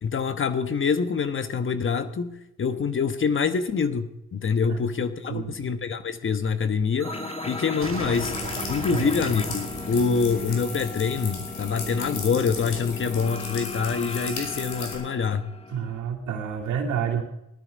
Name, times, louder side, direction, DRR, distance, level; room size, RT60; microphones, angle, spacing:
voice 1, 0.0-2.3 2.6-7.1 7.5-8.4 8.7-15.4, left 5 dB, 40° left, 11 dB, 1.4 m, -25 dB
sound 1, 7.0-16.0, left 3 dB, 20° left, 1.2 m, -36 dB
sound 2, 7.0-12.7, right 6 dB, 45° right, 2.0 m, -40 dB
sound 3, 8.1-14.9, left 4 dB, 70° left, 5.4 m, -37 dB
voice 2, 15.7-17.2, right 7 dB, 75° right, -4 dB, 2.8 m, -29 dB
18.0 x 12.5 x 5.3 m, 0.85 s
cardioid pair, 90°, 30 cm